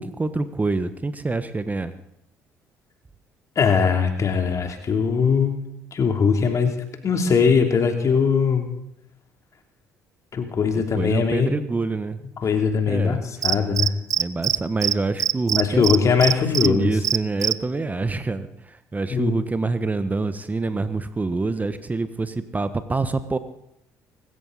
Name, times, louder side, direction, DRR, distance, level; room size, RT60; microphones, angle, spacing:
voice 1, 0.0-1.9 10.9-12.2 12.9-13.2 14.2-16.0 16.6-23.4, right 3 dB, 20° right, 11 dB, 1.2 m, -26 dB
voice 2, 3.5-5.5 5.9-6.7 7.0-8.7 10.3-11.6 12.4-13.9 15.6-16.9 19.1-19.3, left 5 dB, 40° left, 4 dB, 3.1 m, -20 dB
Cricket, 13.4-14.6 14.8-14.9 15.2-16.7 17.0-17.5, right 10 dB, 45° right, 0.7 m, -21 dB
24.0 x 14.0 x 4.1 m, 0.80 s
figure-of-eight pair, 50°, 8 cm